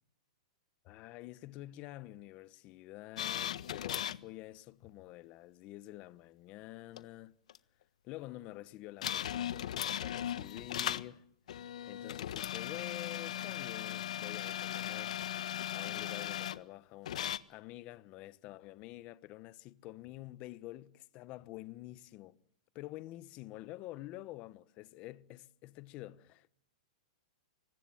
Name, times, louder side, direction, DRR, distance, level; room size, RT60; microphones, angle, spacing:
voice 1, 0.8-7.3 8.0-11.3 11.9-15.2 15.7-22.4 22.7-26.5, left 16 dB, 30° left, 1.1 m, -48 dB
sound 1, 3.2-4.2 7.0-7.1 7.5-7.6 9.0-11.1 11.5-16.6 17.1-17.4, left 11 dB, 70° left, 1.4 m, -37 dB
26.0 x 23.5 x 7.3 m
hypercardioid pair, 155°, 4 cm